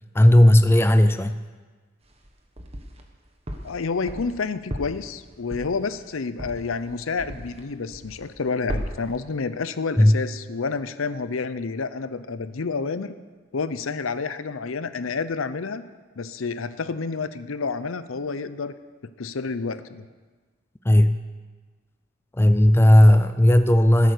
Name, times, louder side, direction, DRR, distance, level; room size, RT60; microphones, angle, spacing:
voice 1, 0.1-1.4 10.0-10.2 20.9-21.2 22.4-24.1, left 1 dB, 10° left, 10 dB, 0.4 m, -15 dB
sound 1, 2.0-3.1 3.5-7.6 7.9-8.4 8.7-9.2, equal, 30° right, 1.2 m, -35 dB
voice 2, 3.6-13.1 13.5-15.8 16.2-18.7 19.2-20.1, left 4 dB, 80° left, 13 dB, 0.7 m, -29 dB
16.0 x 8.4 x 6.6 m, 1.4 s
head